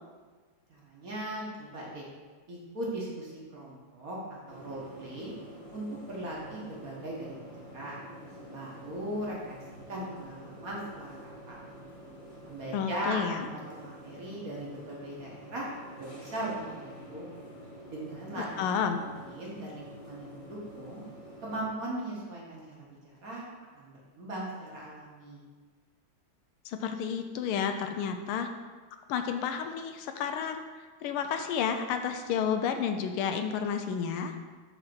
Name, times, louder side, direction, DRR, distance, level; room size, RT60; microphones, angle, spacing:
voice 1, 0.7-2.1 2.5-5.3 5.7-7.4 7.7-8.0 8.5-9.4 9.9-11.6 12.4-15.7 16.0-17.3 17.9-18.7 19.3-21.0 21.4-22.9 23.2-23.4 23.8-25.4, right 1 dB, 50° right, -4 dB, 1.4 m, -38 dB
sound 1, 4.5-21.7, equal, 40° left, 1.7 m, -48 dB
voice 2, 12.7-13.5 18.4-19.0 26.6-28.5 29.1-34.4, left 7 dB, 80° left, 7 dB, 1.4 m, -31 dB
5.1 x 4.1 x 5.9 m, 1.4 s
omnidirectional pair, 2.4 m